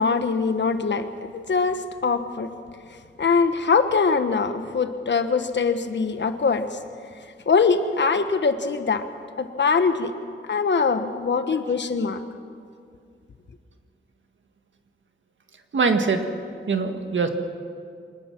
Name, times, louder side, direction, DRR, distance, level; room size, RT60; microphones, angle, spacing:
voice 1, 0.0-2.5 3.2-6.8 7.5-9.1 9.4-10.1 10.5-12.2, left 5 dB, 60° left, 9 dB, 1.3 m, -22 dB
voice 2, 15.7-16.2 16.7-17.3, right 4 dB, 65° right, 6 dB, 1.8 m, -22 dB
24.5 x 20.0 x 6.1 m, 2.2 s
wide cardioid pair, 105°, 21 cm